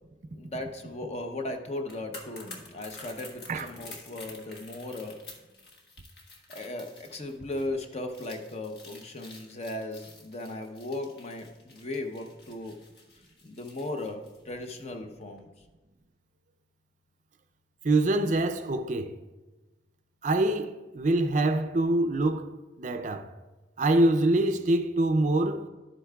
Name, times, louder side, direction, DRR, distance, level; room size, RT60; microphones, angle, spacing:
voice 1, 0.3-5.2 6.5-12.7 13.4-15.5, left 2 dB, 35° left, 0.7 m, -37 dB
sound 1, 1.8-14.9 15.2-15.4, left 3 dB, 60° left, 1.4 m, -49 dB
voice 2, 17.8-19.2 20.2-22.5 22.8-23.3 23.8-25.7, right 2 dB, 45° right, 0.4 m, -25 dB
11.0 x 8.3 x 2.3 m
head